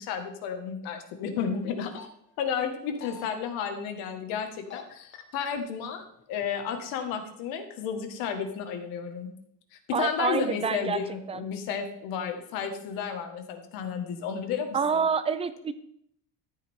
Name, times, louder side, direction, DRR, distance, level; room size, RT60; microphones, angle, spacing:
voice 1, 0.0-1.9 2.4-9.3 9.7-14.8, left 7 dB, 85° left, 6 dB, 1.9 m, -32 dB
sound 1, 1.7-2.1 2.7-3.3 4.5-4.8 5.1-5.5 6.2-6.7 7.1-7.2, left 9 dB, 35° left, 1.2 m, -44 dB
voice 2, 9.9-11.0 11.3-11.4 14.7-15.7, right 6 dB, 20° right, 13 dB, 0.5 m, -27 dB
13.5 x 8.9 x 3.7 m, 0.69 s
cardioid pair, 170°, 34 cm